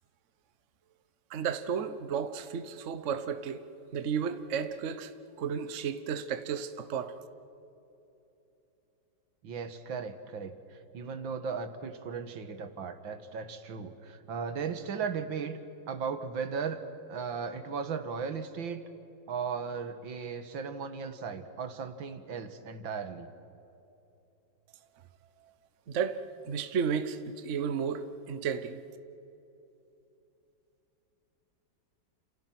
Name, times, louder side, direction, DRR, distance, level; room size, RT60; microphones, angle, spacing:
voice 1, 1.3-3.6 3.9-5.1 5.4-7.1 25.9-26.2 26.5-28.8, right 7 dB, 45° right, 11 dB, 1.1 m, -33 dB
voice 2, 9.4-15.6 15.9-16.8 17.1-18.8 19.3-23.3, right 6 dB, 80° right, 9 dB, 2.2 m, -36 dB
30.0 x 28.0 x 6.0 m, 2.9 s
omnidirectional pair, 2.1 m